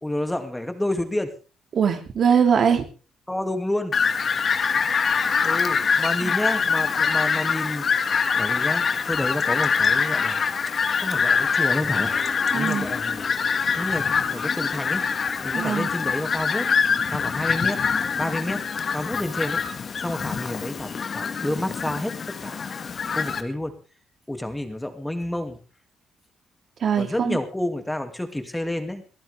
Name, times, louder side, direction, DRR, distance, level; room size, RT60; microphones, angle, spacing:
voice 1, 0.0-1.3 3.3-3.9 5.4-7.8 8.4-10.4 11.0-12.1 12.5-13.3 13.7-15.1 15.4-16.7 17.0-17.8 18.2-18.6 18.9-19.6 20.0-22.7 23.1-23.7 24.3-25.6 27.0-29.0, left 1 dB, 10° left, 7 dB, 2.6 m, -29 dB
voice 2, 1.7-2.8 6.2-6.3 12.5-12.9 15.5-15.9 26.8-27.4, right 7 dB, 60° right, 6 dB, 2.8 m, -21 dB
Fowl, 3.9-23.4, left 6 dB, 50° left, 1.9 m, -24 dB
sound 1, 11.9-17.3, right 2 dB, 40° right, 4.2 m, -48 dB
23.0 x 14.5 x 3.6 m, 0.35 s
cardioid pair, 90°, 0 cm